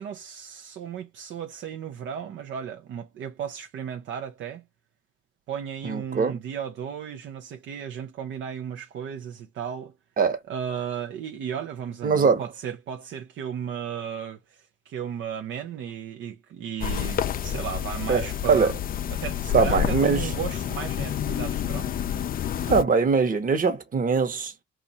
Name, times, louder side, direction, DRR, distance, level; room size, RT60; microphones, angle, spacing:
voice 1, 0.0-4.6 5.5-9.9 10.5-18.7 19.1-21.9, right 8 dB, 70° right, 0.6 m, -35 dB
voice 2, 5.8-6.4 10.2-10.4 12.0-12.4 18.1-18.7 19.5-20.3 22.7-24.6, right 5 dB, 45° right, 1.1 m, -22 dB
sound 1, 16.8-22.8, left 9 dB, 45° left, 0.4 m, -29 dB
2.7 x 2.5 x 4.1 m
cardioid pair, 90°, 20 cm